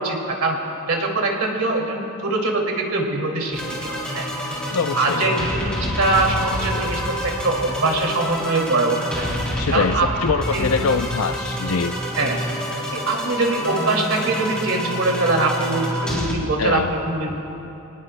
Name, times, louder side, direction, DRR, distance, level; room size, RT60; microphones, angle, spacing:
voice 1, 0.0-4.2 4.9-5.7 6.0-9.4 9.7-10.1 10.5-10.7 12.2-12.4 12.9-17.4, right 2 dB, 85° right, 0 dB, 2.3 m, -23 dB
sound 1, 3.5-16.3, equal, 5° left, 3.1 m, -27 dB
voice 2, 4.7-5.2 9.6-12.0 16.6-16.9, left 5 dB, 75° left, 11 dB, 0.5 m, -23 dB
26.0 x 19.0 x 2.2 m, 2.9 s
head